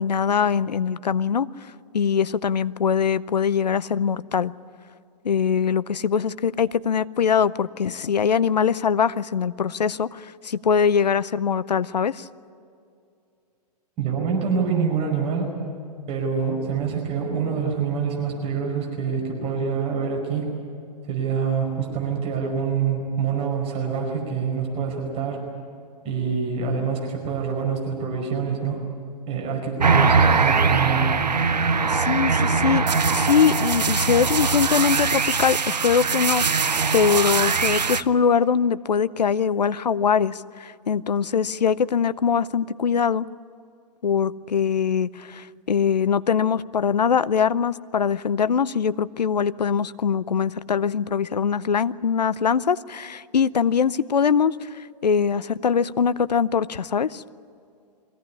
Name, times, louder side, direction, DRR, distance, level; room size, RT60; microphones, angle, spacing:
voice 1, 0.0-4.5 5.2-12.3 31.9-36.4 36.9-43.3 44.0-57.2, left 7 dB, 80° left, 17 dB, 0.7 m, -22 dB
voice 2, 14.0-15.6 16.1-20.5 21.0-25.4 26.0-28.8 29.3-31.1, right 6 dB, 30° right, 0 dB, 5.2 m, -26 dB
sound 1, 29.8-38.0, right 5 dB, 85° right, 0.7 m, -21 dB
23.0 x 17.0 x 9.8 m, 2.5 s
figure-of-eight pair, 115°, 21 cm